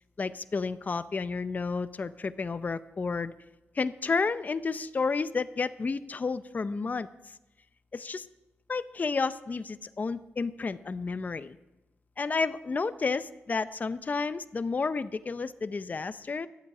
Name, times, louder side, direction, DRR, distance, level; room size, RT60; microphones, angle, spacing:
voice 1, 0.2-3.3 3.7-7.1 7.9-8.3 8.7-11.6 12.2-16.5, left 4 dB, 40° left, 12 dB, 0.6 m, -31 dB
11.5 x 8.3 x 8.4 m, 1.0 s
cardioid pair, 75°, 4 cm